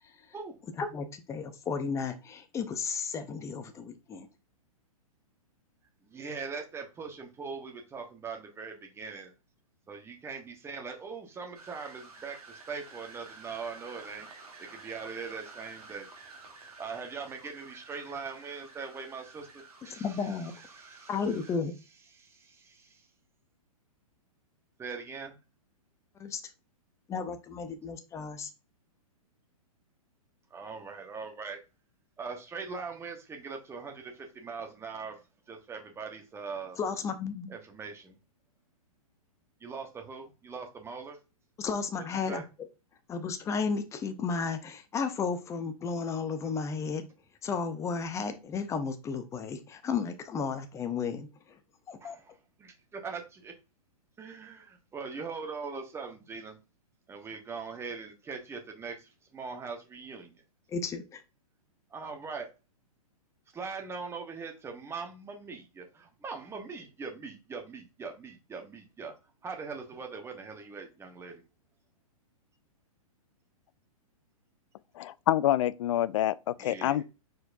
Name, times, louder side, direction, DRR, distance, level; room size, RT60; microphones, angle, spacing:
voice 1, 0.8-4.3 20.0-20.5 21.1-21.7 26.2-26.4 27.1-28.5 36.8-37.5 41.6-42.4 43.1-47.0 47.4-51.3 51.9-52.2 60.7-61.2, left 5 dB, 15° left, 0.6 m, -33 dB
voice 2, 6.0-9.3 9.9-14.3 14.6-16.1 16.8-20.2 20.7-21.1 22.1-23.1 24.8-25.4 30.5-31.6 32.2-35.2 35.5-36.8 37.5-38.2 39.6-41.2 42.3-42.4 52.0-52.3 52.6-53.5 54.2-56.6 57.1-60.3 61.9-62.5 63.5-69.1 69.4-71.4 76.6-77.0, right 5 dB, 15° right, 1.1 m, -41 dB
sound 1, 11.5-21.6, right 3 dB, 85° right, 1.6 m, -51 dB
voice 3, 75.0-77.0, left 13 dB, 55° left, 0.4 m, -27 dB
4.5 x 4.3 x 2.6 m
hypercardioid pair, 120°, 19 cm